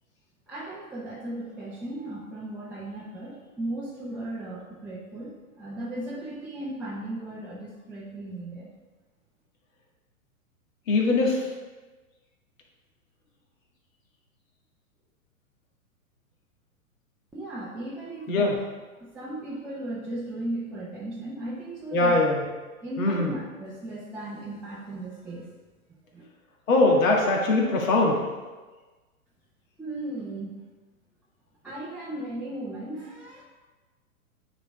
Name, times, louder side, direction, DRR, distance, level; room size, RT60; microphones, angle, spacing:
voice 1, 0.5-8.7 17.3-18.6 18.9-22.2 22.8-25.5 26.1-26.2 29.8-30.5 31.6-33.4, right 1 dB, 5° right, -8 dB, 0.4 m, -36 dB
voice 2, 10.9-11.5 18.3-18.6 21.9-22.4 23.0-23.3 26.7-28.2, left 2 dB, 65° left, -1 dB, 1.9 m, -21 dB
9.4 x 3.9 x 3.5 m, 1.3 s
hypercardioid pair, 120°, 43 cm